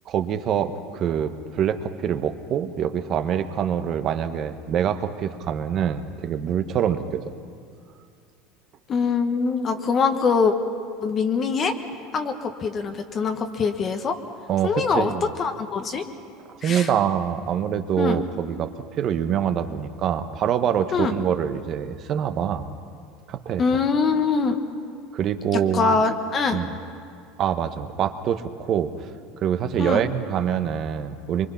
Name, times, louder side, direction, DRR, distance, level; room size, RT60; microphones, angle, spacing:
voice 1, 0.1-7.2 14.5-15.3 16.5-18.7 19.0-22.7 23.3-23.6 25.1-26.0 26.5-26.7 27.4-28.9 29.4-31.5, right 9 dB, 45° right, 9 dB, 1.2 m, -25 dB
voice 2, 8.9-10.5 11.0-11.7 12.1-14.2 14.6-16.0 16.6-16.9 18.0-18.2 20.9-21.1 23.6-24.6 25.7-26.6 29.8-30.0, left 5 dB, 35° left, 6 dB, 1.4 m, -23 dB
24.0 x 23.5 x 5.8 m, 2.2 s
supercardioid pair, 115°, 0 cm